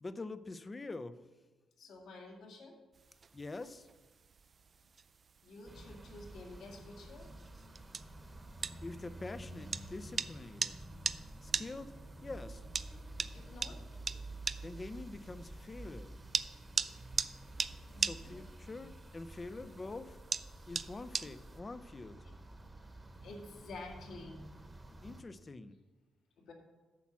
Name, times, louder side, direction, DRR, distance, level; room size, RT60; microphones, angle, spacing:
voice 1, 0.0-1.2 3.3-3.9 8.8-10.8 11.4-11.9 12.2-12.6 14.6-16.1 18.0-20.2 20.7-22.2 25.0-25.8, left 3 dB, 25° left, 14 dB, 0.5 m, -45 dB
voice 2, 1.8-2.8 5.4-7.3 13.3-13.8 17.9-18.4 19.5-19.6 20.7-21.3 22.2-22.3 23.2-24.4 24.9-25.0 26.4-26.5, left 2 dB, 75° left, 0 dB, 2.1 m, -51 dB
sound 1, 2.9-21.6, right 5 dB, 35° right, 0.3 m, -41 dB
sound 2, 5.7-25.2, right 2 dB, 15° right, 1.0 m, -50 dB
8.4 x 5.8 x 7.3 m, 1.2 s
cardioid pair, 115°, 0 cm